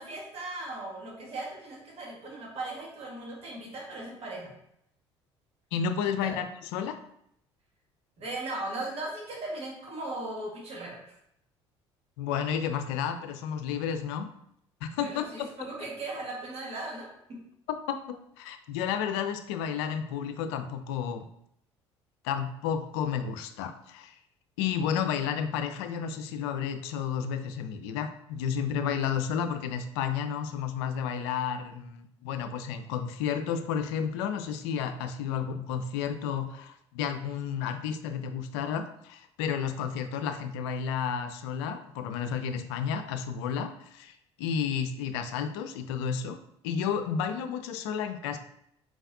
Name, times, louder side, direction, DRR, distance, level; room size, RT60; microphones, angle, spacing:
voice 1, 0.0-4.5 6.2-6.4 8.2-11.1 15.0-17.4 35.3-35.4, right 2 dB, 45° right, -2 dB, 1.5 m, -38 dB
voice 2, 5.7-6.5 6.7-7.0 12.2-14.3 14.8-15.2 15.6-15.7 17.7-21.3 22.2-24.1 24.6-44.1 44.4-46.4 46.6-48.4, left 7 dB, 65° left, 8 dB, 0.5 m, -31 dB
4.5 x 4.0 x 2.6 m, 0.74 s
figure-of-eight pair, 55°, 15 cm